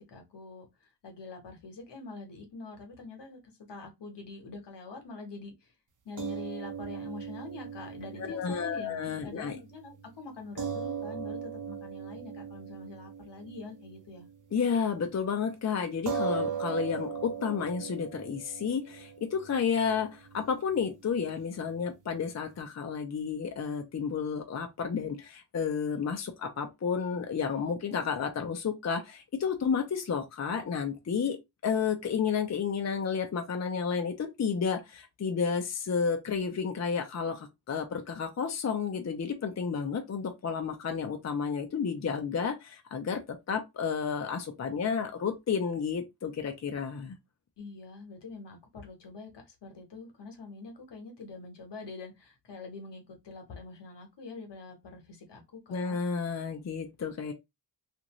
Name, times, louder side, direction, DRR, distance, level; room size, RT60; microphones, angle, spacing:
voice 1, 0.1-3.4 3.7-5.7 6.0-14.3 47.6-56.0, left 3 dB, 70° left, 1.1 m, -45 dB
sound 1, 6.2-14.7 15.0-15.2 16.1-22.6, right 6 dB, 45° right, 0.7 m, -39 dB
voice 2, 8.2-9.6 14.5-47.2 55.7-57.3, left 6 dB, 40° left, 0.6 m, -31 dB
2.5 x 2.5 x 3.0 m
cardioid pair, 55°, 43 cm